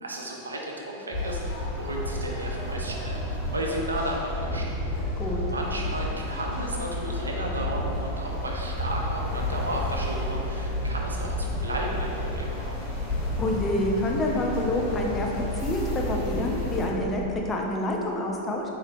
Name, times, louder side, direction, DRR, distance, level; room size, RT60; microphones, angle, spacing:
voice 1, 0.0-3.2 3.5-4.8 5.5-12.8, right 1 dB, 75° right, -1 dB, 0.4 m, -33 dB
sound 1, 1.1-16.9, left 1 dB, 50° left, 0.9 m, -31 dB
voice 2, 13.4-15.3 15.6-18.6, left 1 dB, 20° left, -1 dB, 0.4 m, -27 dB
4.0 x 2.9 x 2.5 m, 3.0 s
figure-of-eight pair, 90°, 0 cm